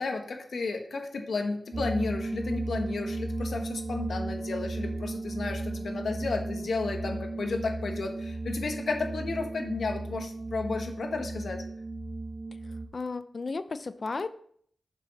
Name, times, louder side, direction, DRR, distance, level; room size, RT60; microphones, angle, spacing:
voice 1, 0.0-11.6, left 3 dB, 75° left, 3 dB, 1.6 m, -33 dB
sound 1, 1.7-12.9, right 2 dB, 35° right, 0.9 m, -35 dB
voice 2, 12.9-14.3, left 3 dB, 45° left, 12 dB, 0.6 m, -34 dB
11.0 x 6.3 x 4.3 m, 0.62 s
wide cardioid pair, 125°, 0 cm